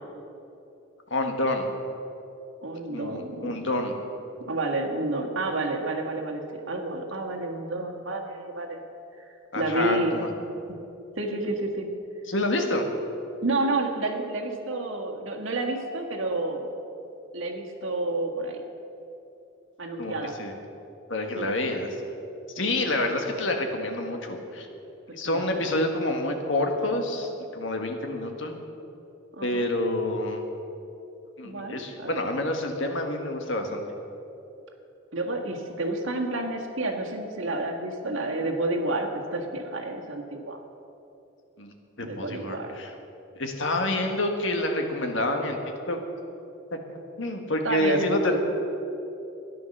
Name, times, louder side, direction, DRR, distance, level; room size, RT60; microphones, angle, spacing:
voice 1, 1.1-1.7 2.9-3.9 9.5-10.3 12.3-12.9 20.0-20.5 21.1-21.9 22.6-24.7 25.1-28.6 29.4-30.5 31.4-33.8 41.6-42.9 43.4-45.6 45.9-46.0 46.7-48.4, left 1 dB, 70° left, 4 dB, 1.6 m, -28 dB
voice 2, 2.6-3.6 4.5-8.8 9.2-9.3 9.6-10.2 10.7-10.8 11.2-11.9 13.4-16.7 17.3-18.6 19.8-20.4 21.4-21.5 22.6-22.7 25.2-25.8 29.4-29.7 31.4-32.2 35.1-40.6 42.0-42.8 47.6-48.1, right 2 dB, 80° right, 1 dB, 1.7 m, -30 dB
13.5 x 10.5 x 6.6 m, 2.8 s
head